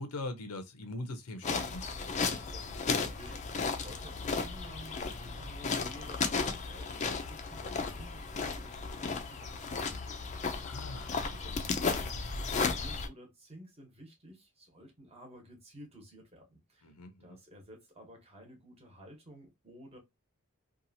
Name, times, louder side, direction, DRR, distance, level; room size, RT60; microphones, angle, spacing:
voice 1, 0.0-1.8 10.6-11.4 16.8-17.4, left 2 dB, 90° left, 0.6 m, -41 dB
sound 1, 1.4-13.1, left 4 dB, 30° left, 0.4 m, -34 dB
voice 2, 2.0-10.7 11.0-12.1 12.4-16.9 17.2-20.0, equal, 30° right, 1.0 m, -53 dB
2.8 x 2.3 x 2.6 m
head